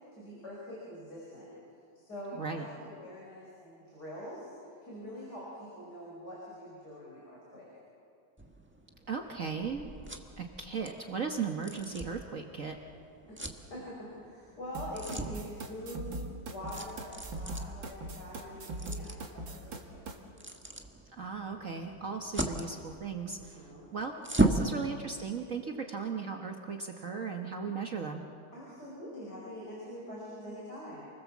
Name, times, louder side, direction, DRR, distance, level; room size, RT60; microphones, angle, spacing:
voice 1, 0.1-1.5 2.0-7.7 13.3-13.4 13.7-16.1 16.5-20.1 23.4-23.9 28.5-31.1, equal, 55° left, -5 dB, 6.1 m, -44 dB
sound 1, 8.4-24.7, right 2 dB, 5° right, 1.3 m, -38 dB
voice 2, 9.1-9.9 10.4-12.8 21.1-24.1 24.4-28.3, right 5 dB, 45° right, 3 dB, 1.4 m, -37 dB
sound 2, 14.7-20.2, right 2 dB, 75° right, 2.7 m, -40 dB
29.0 x 20.5 x 7.3 m, 2.4 s
omnidirectional pair, 2.1 m